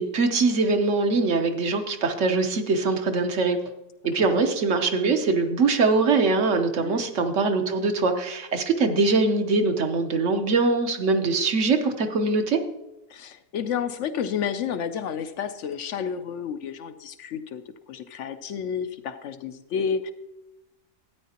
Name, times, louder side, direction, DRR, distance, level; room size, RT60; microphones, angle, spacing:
voice 1, 0.0-3.6 4.0-12.6, right 3 dB, 65° right, 6 dB, 1.2 m, -22 dB
voice 2, 6.7-7.0 13.1-17.6 17.9-20.1, left 7 dB, 70° left, 10 dB, 0.8 m, -31 dB
13.0 x 9.2 x 2.9 m, 0.95 s
omnidirectional pair, 1.4 m